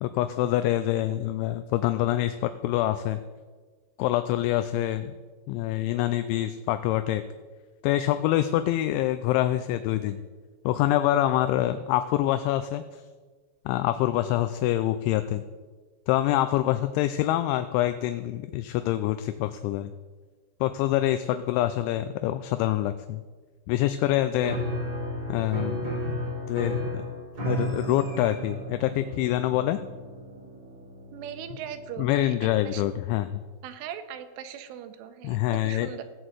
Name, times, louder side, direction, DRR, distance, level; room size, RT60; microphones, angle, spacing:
voice 1, 0.0-3.2 4.0-5.1 5.5-7.2 7.8-10.2 10.7-13.0 13.7-15.4 16.1-19.9 20.6-23.2 23.7-24.6 25.3-26.2 26.5-27.0 27.4-29.8 32.0-33.4 35.2-35.9, left 13 dB, 85° left, 10 dB, 2.8 m, -26 dB
Piano, 24.4-32.9, equal, 35° right, 2.1 m, -34 dB
voice 2, 31.1-32.4 32.6-32.9 33.6-36.0, right 9 dB, 85° right, 9 dB, 3.2 m, -39 dB
16.0 x 6.1 x 7.9 m, 1.4 s
omnidirectional pair, 5.6 m